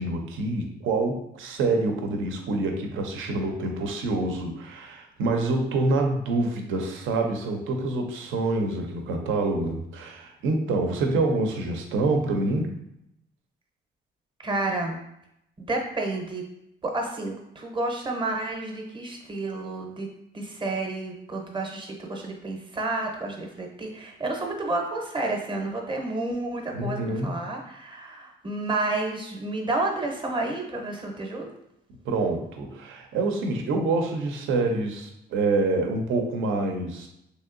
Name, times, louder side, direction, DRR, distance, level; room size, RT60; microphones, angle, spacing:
voice 1, 0.0-12.7 26.7-27.4 32.0-37.1, right 2 dB, 85° right, 3 dB, 0.5 m, -26 dB
voice 2, 14.4-15.0 15.6-16.4 16.8-20.1 20.3-31.5, right 2 dB, 25° right, 1 dB, 0.6 m, -30 dB
3.1 x 2.7 x 2.5 m, 0.80 s
cardioid pair, 90°, 20 cm